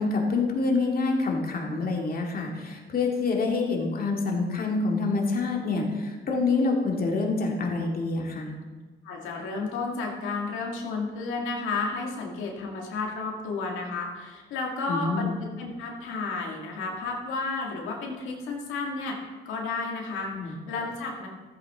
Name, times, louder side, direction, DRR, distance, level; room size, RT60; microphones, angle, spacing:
voice 1, 0.0-8.5 14.9-15.3 20.3-20.5, left 3 dB, 50° left, 0 dB, 2.3 m, -26 dB
voice 2, 9.0-19.2 19.5-21.3, left 3 dB, 90° left, -1 dB, 1.9 m, -32 dB
13.5 x 8.6 x 3.6 m, 1.3 s
cardioid pair, 90°, 20 cm